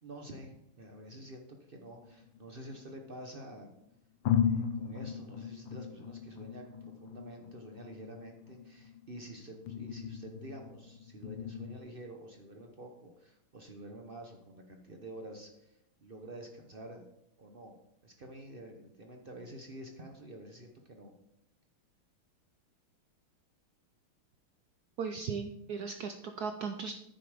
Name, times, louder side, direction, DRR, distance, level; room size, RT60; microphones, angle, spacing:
voice 1, 0.0-3.7 4.4-17.1 17.4-17.8 18.0-21.1, right 1 dB, 55° right, 3 dB, 0.6 m, -48 dB
sound 1, 1.9-3.2 3.8-3.9 4.2-11.8, left 8 dB, 70° left, 1.4 m, -37 dB
voice 2, 25.0-27.0, right 5 dB, 80° right, 6 dB, 0.8 m, -37 dB
9.8 x 6.7 x 5.0 m, 0.82 s
omnidirectional pair, 2.4 m